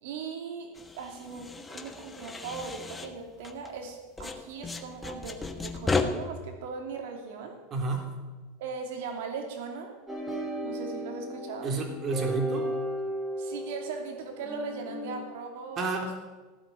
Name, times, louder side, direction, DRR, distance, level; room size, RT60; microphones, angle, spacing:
voice 1, 0.0-7.6 8.6-9.9 10.6-11.7 13.4-16.2, right 5 dB, 75° right, 4 dB, 2.6 m, -39 dB
sound 1, 0.7-3.9 4.2-6.0, left 4 dB, 15° left, 1.4 m, -34 dB
voice 2, 7.7-8.1 11.6-12.7 15.8-16.2, right 3 dB, 35° right, 3 dB, 3.4 m, -30 dB
sound 2, 10.1-15.2, equal, 10° right, 4.8 m, -35 dB
16.0 x 8.1 x 9.7 m, 1.3 s
supercardioid pair, 125°, 0 cm